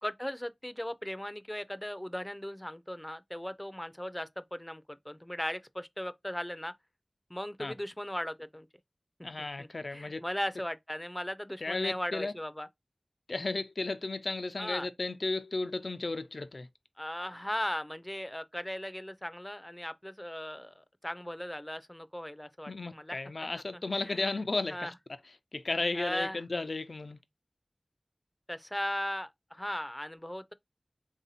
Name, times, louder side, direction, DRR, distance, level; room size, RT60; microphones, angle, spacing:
voice 1, 0.0-6.7 7.3-8.7 9.6-12.7 14.6-14.9 17.0-23.2 23.7-24.3 24.7-24.9 26.0-26.4 28.5-30.5, equal, 15° left, 0.4 m, -38 dB
voice 2, 9.2-10.2 11.6-12.3 13.3-16.7 22.7-24.9 25.2-27.2, left 3 dB, 80° left, 0.4 m, -34 dB
3.4 x 2.7 x 4.0 m
wide cardioid pair, 45°, 0 cm